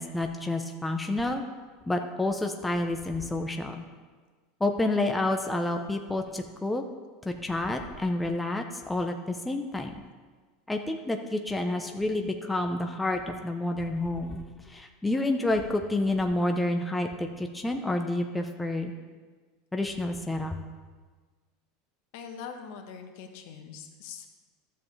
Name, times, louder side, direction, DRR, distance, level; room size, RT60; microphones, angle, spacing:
voice 1, 0.0-1.4 1.9-3.8 4.6-6.8 7.2-9.9 10.7-18.9 19.7-20.6, left 2 dB, 10° left, 4 dB, 0.8 m, -29 dB
voice 2, 22.1-24.3, left 6 dB, 65° left, 4 dB, 1.2 m, -42 dB
12.5 x 7.0 x 3.3 m, 1.4 s
hypercardioid pair, 90°, 0 cm